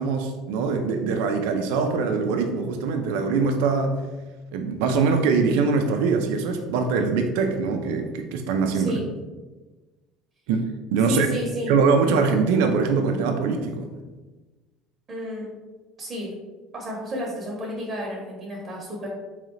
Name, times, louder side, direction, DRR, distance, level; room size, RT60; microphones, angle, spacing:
voice 1, 0.0-4.0 4.5-9.0 10.5-11.3 11.7-13.9, right 5 dB, 85° right, 5 dB, 0.5 m, -23 dB
voice 2, 8.7-9.1 11.1-11.7 15.1-15.5 16.0-16.3 16.7-19.1, left 1 dB, 30° right, -3 dB, 1.0 m, -31 dB
3.8 x 3.2 x 3.1 m, 1.2 s
cardioid pair, 125°, 0 cm